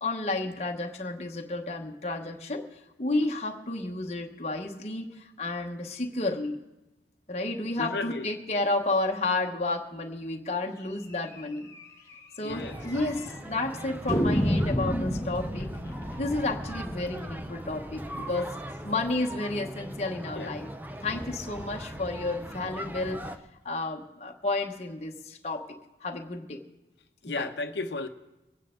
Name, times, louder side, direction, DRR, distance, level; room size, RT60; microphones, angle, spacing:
voice 1, 0.0-2.7 3.0-6.6 7.3-11.7 12.4-15.7 16.2-18.5 18.8-20.7 21.0-23.2 23.6-25.7 26.0-26.6 27.4-27.5, left 2 dB, 40° left, 1.0 m, -31 dB
voice 2, 7.8-8.3 12.4-12.8 18.3-18.5 20.4-20.5 21.1-21.2 27.2-28.1, left 3 dB, 75° left, 0.9 m, -34 dB
sound 1, 11.3-11.4 11.7-11.8 12.1-12.2 12.8-13.4 14.1-18.9, equal, 15° left, 1.1 m, -31 dB
sound 2, 12.5-23.4, equal, 10° right, 0.6 m, -40 dB
24.5 x 9.2 x 3.7 m
head